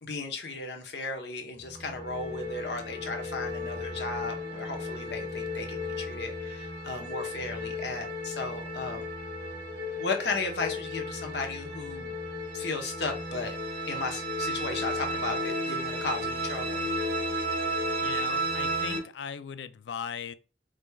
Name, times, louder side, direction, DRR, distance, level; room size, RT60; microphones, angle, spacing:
voice 1, 0.0-9.1 10.0-12.1 12.5-13.6 13.9-16.9, left 3 dB, 70° left, 0.9 m, -35 dB
sound 1, 1.6-19.0, equal, 85° right, 1.3 m, -34 dB
voice 2, 18.0-20.3, left 7 dB, 90° left, 0.4 m, -38 dB
4.9 x 3.4 x 2.3 m
head